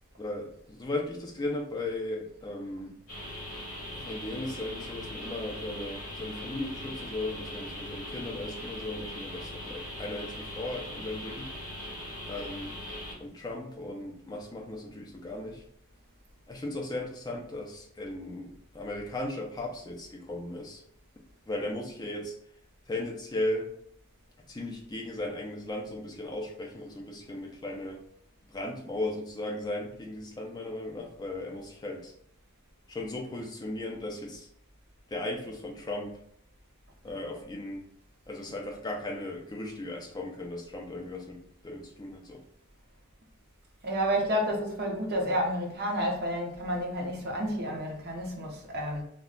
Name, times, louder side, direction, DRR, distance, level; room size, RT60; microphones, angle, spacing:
voice 1, 0.2-3.0 3.8-11.5 12.3-12.8 13.2-15.6 16.5-20.8 21.5-22.4 22.9-23.7 24.5-28.0 28.5-32.1 32.9-34.5 35.1-36.2 37.0-37.9 38.3-42.4, left 1 dB, 20° left, 0.4 m, -36 dB
sound 1, 3.1-13.1, left 1 dB, 45° left, 1.3 m, -40 dB
voice 2, 43.8-49.0, equal, 50° right, 0.6 m, -30 dB
2.3 x 2.2 x 3.6 m
head